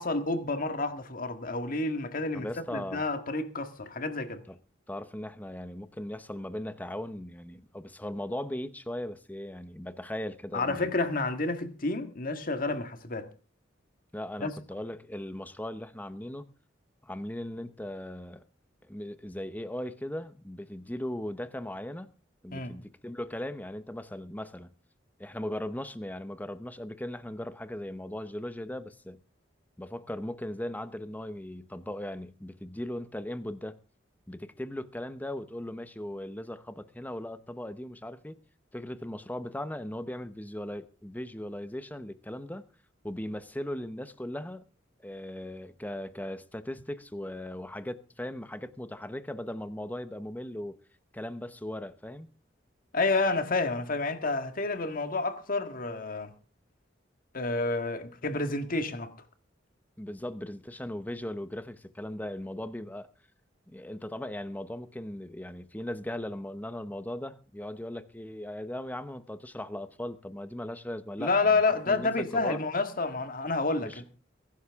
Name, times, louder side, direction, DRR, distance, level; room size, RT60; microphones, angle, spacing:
voice 1, 0.0-2.5 2.7-4.4 10.5-13.3 14.4-14.5 22.5-22.7 52.9-56.3 57.3-59.1 71.2-74.1, left 3 dB, 50° left, 1.8 m, -29 dB
voice 2, 2.3-3.0 4.5-4.6 4.9-10.9 14.1-16.5 17.0-18.4 18.8-22.1 22.4-24.7 25.2-29.2 29.8-33.8 34.3-38.4 38.7-42.7 43.0-44.7 45.0-50.8 51.1-52.3 60.0-63.1 63.7-72.6 73.8-74.0, left 1 dB, 10° left, 0.9 m, -38 dB
22.5 x 11.5 x 3.6 m
head